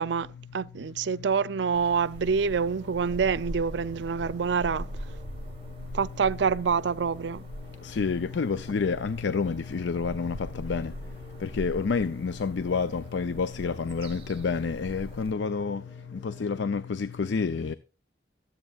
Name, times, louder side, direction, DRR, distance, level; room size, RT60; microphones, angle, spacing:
voice 1, 0.0-4.9 5.9-7.5, right 5 dB, 80° right, 0.5 m, -27 dB
sound 1, 1.7-15.3, right 1 dB, 30° right, 1.4 m, -42 dB
sound 2, 2.2-16.5, right 1 dB, 5° right, 3.8 m, -55 dB
voice 2, 7.8-10.9 11.4-15.8 16.2-17.7, left 5 dB, 85° left, 0.5 m, -29 dB
23.5 x 8.1 x 2.4 m
head